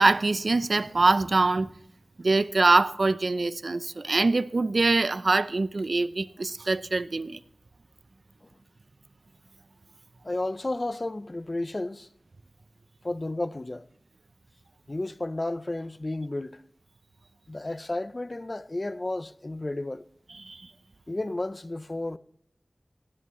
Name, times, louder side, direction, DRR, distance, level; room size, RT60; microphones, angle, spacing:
voice 1, 0.0-1.7 2.2-7.4 20.3-20.7, right 3 dB, 65° right, 0.7 m, -24 dB
voice 2, 10.2-12.1 13.0-13.9 14.9-16.6 17.5-20.0 21.1-22.2, left 2 dB, 40° left, 0.6 m, -32 dB
18.5 x 17.0 x 3.2 m
wide cardioid pair, 60°, 0 cm